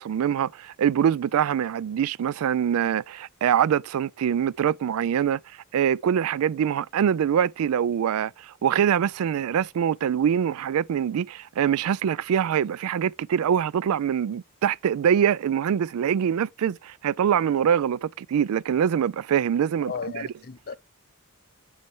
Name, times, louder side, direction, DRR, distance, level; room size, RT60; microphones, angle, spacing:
voice 1, 0.0-5.4 5.7-19.9, right 8 dB, 75° right, 0.3 m, -24 dB
voice 2, 19.8-20.8, left 5 dB, 45° left, 0.6 m, -35 dB
6.2 x 5.6 x 4.5 m
head